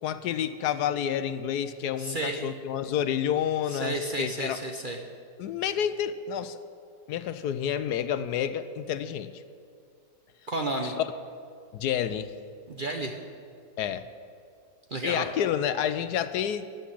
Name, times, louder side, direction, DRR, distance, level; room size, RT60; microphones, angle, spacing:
voice 1, 0.0-4.6 5.4-6.6 7.1-9.4 10.8-11.1 11.7-12.3 13.8-14.1 15.0-16.7, left 9 dB, 75° left, 12 dB, 1.1 m, -29 dB
voice 2, 2.0-2.5 3.7-5.0 10.5-11.0 12.7-13.2 14.9-15.2, right 2 dB, 40° right, 3 dB, 0.8 m, -31 dB
14.0 x 7.3 x 10.0 m, 2.3 s
omnidirectional pair, 1.8 m